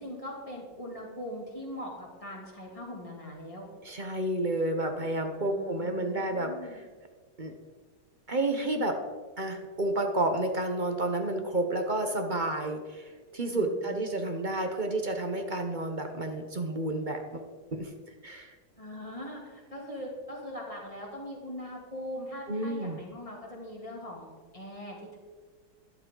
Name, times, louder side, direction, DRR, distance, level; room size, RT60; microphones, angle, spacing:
voice 1, 0.0-3.7 5.4-6.8 13.5-14.2 18.8-25.2, equal, 20° left, -3 dB, 3.0 m, -41 dB
voice 2, 3.8-6.5 7.4-7.5 8.3-9.0 9.4-17.4 17.7-17.9 18.2-18.5 22.5-23.0, right 2 dB, 35° right, 5 dB, 0.9 m, -30 dB
13.0 x 11.5 x 3.9 m, 1.4 s
omnidirectional pair, 1.9 m